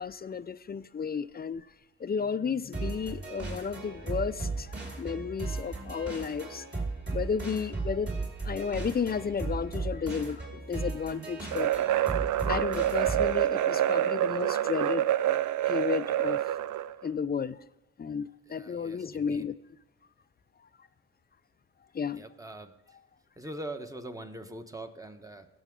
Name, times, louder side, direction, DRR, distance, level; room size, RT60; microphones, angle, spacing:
voice 1, 0.0-1.7 2.0-6.7 7.1-8.1 8.4-11.7 12.4-15.1 15.6-16.5 17.0-17.6 18.0-19.6 21.9-22.2, left 6 dB, 30° left, 0.5 m, -33 dB
sound 1, 2.7-13.4, right 3 dB, 35° right, 4.4 m, -36 dB
sound 2, 11.5-16.9, right 12 dB, 80° right, 0.5 m, -27 dB
voice 2, 18.5-19.5 22.1-23.0 23.4-25.5, right 1 dB, 10° right, 1.2 m, -42 dB
17.5 x 7.0 x 3.7 m
cardioid pair, 75°, 30 cm